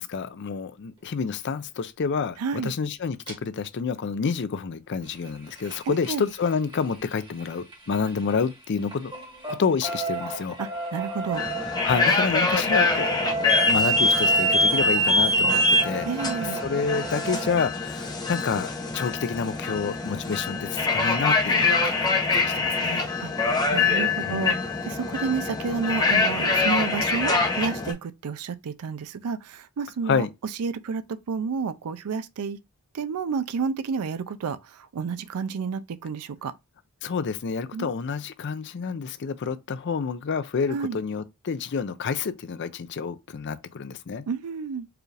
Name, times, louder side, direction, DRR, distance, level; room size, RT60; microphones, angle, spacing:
voice 1, 0.0-9.1 9.5-10.6 11.8-16.1 16.4-23.1 24.2-24.7 30.1-30.3 37.0-44.3, left 5 dB, 50° left, 0.4 m, -29 dB
voice 2, 2.4-2.7 5.9-6.2 10.6-11.4 16.0-16.6 23.2-23.3 23.7-30.3 30.6-31.0 31.3-32.6 32.9-36.5 37.7-37.9 40.7-41.0 44.3-44.9, right 5 dB, 80° right, 0.4 m, -30 dB
sound 1, 3.3-3.4 5.0-8.5 8.8-17.5 19.2-19.3 19.6-19.7 20.0-20.1, right 3 dB, 20° right, 1.2 m, -34 dB
sound 2, 11.3-27.9, left 2 dB, 20° left, 0.7 m, -24 dB
4.8 x 2.4 x 3.2 m
head